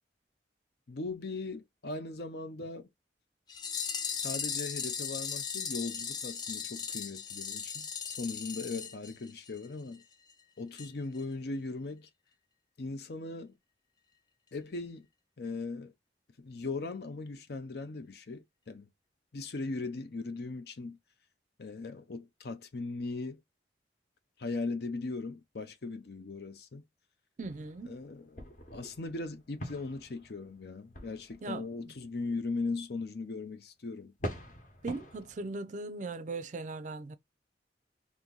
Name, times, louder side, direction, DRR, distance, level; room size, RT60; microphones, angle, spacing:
voice 1, 0.9-2.9 4.1-10.0 10.6-12.1 12.8-13.5 14.5-15.1 15.4-15.9 16.4-18.9 19.3-21.0 21.6-23.4 24.4-26.8 27.8-34.1, left 3 dB, 60° left, 0.6 m, -39 dB
sound 1, 3.5-9.7 9.9-10.0 10.3-10.4 10.8-10.9 11.2-11.3, left 6 dB, 25° left, 0.3 m, -37 dB
sound 2, 27.4-31.8 33.0-33.1 34.2-35.5, equal, 45° left, 1.0 m, -44 dB
voice 2, 27.4-28.0 31.4-31.6 34.8-37.2, right 3 dB, 45° right, 0.4 m, -38 dB
2.9 x 2.6 x 3.8 m
head